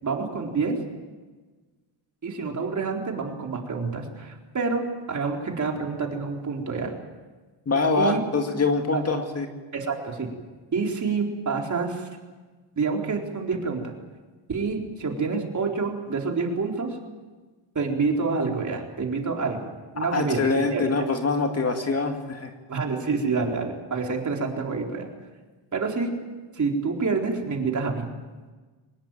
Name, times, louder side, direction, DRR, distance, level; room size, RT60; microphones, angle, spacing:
voice 1, 0.0-0.8 2.2-6.9 8.0-8.2 8.9-9.0 9.7-10.3 10.7-12.1 12.8-13.9 14.5-17.0 17.7-19.7 19.9-20.8 22.7-25.1 25.7-26.1 26.6-28.1, right 4 dB, 35° right, 1 dB, 4.2 m, -27 dB
voice 2, 7.7-9.5 20.0-22.5, left 3 dB, 30° left, 4 dB, 2.2 m, -24 dB
24.0 x 20.0 x 9.2 m, 1.3 s
cardioid pair, 135°, 49 cm